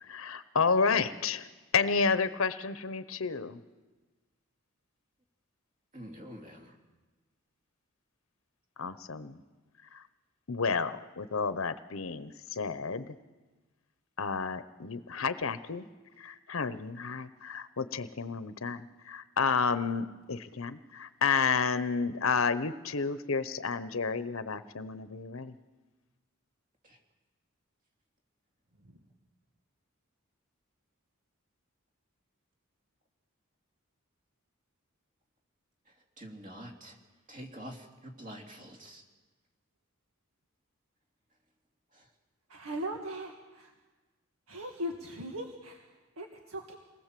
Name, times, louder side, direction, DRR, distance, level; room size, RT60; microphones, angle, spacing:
voice 1, 0.0-1.5 1.7-3.6 8.8-9.4 9.9-10.0 10.5-13.2 14.2-15.9 16.2-25.5, left 5 dB, 75° left, 12 dB, 0.9 m, -31 dB
voice 2, 5.9-6.7 26.8-27.0 29.0-29.2 36.2-37.0 37.3-39.0 41.9-42.1, equal, 40° right, 2 dB, 3.1 m, -46 dB
voice 3, 42.5-43.7 44.5-46.7, equal, 85° right, 2 dB, 1.9 m, -39 dB
27.0 x 19.5 x 7.6 m, 1.3 s
head